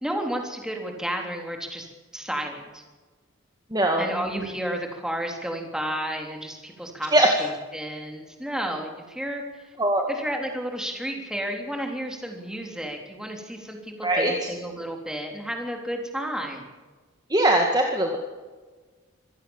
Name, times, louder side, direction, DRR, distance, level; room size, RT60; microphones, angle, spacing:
voice 1, 0.0-1.9 2.1-2.8 4.0-9.7 10.1-16.6, equal, 5° right, 2 dB, 3.5 m, -32 dB
voice 2, 3.7-4.0 7.1-7.3 9.8-10.1 14.0-14.5 17.3-18.2, right 1 dB, 20° right, 2 dB, 2.0 m, -21 dB
26.0 x 18.0 x 7.3 m, 1.3 s
head